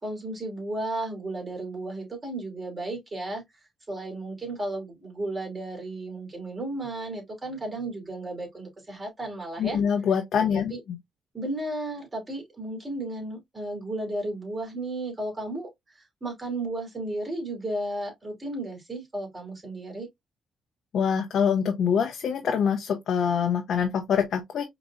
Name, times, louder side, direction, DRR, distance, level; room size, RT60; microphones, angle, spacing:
voice 1, 0.0-3.4 3.9-9.8 10.3-10.8 11.3-20.1, right 2 dB, 25° right, 2.7 m, -34 dB
voice 2, 9.6-10.7 20.9-24.6, left 7 dB, 65° left, 0.7 m, -25 dB
4.9 x 2.9 x 2.4 m
cardioid pair, 90°, 0 cm